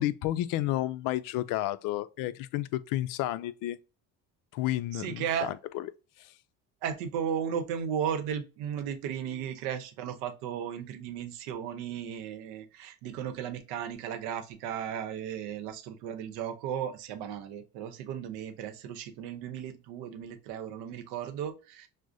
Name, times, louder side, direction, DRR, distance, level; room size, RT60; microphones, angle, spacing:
voice 1, 0.0-3.8 4.5-5.8 6.2-6.3, left 14 dB, 65° left, 0.5 m, -31 dB
voice 2, 4.9-5.5 6.8-21.9, right 8 dB, 85° right, 0.8 m, -35 dB
6.1 x 2.1 x 2.6 m
cardioid pair, 105°, 35 cm